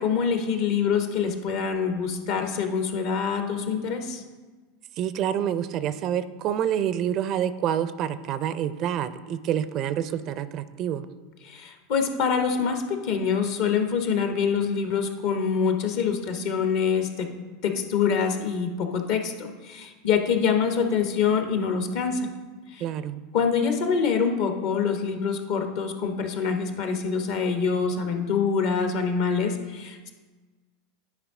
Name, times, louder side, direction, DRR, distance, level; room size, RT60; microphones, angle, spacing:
voice 1, 0.0-4.2 11.4-17.3 17.6-22.3 22.7-22.8 23.3-30.1, left 6 dB, 60° left, 5 dB, 0.9 m, -25 dB
voice 2, 5.0-11.1 22.8-23.2, right 10 dB, 45° right, 14 dB, 0.4 m, -27 dB
10.5 x 4.8 x 3.7 m, 1.3 s
hypercardioid pair, 90°, 0 cm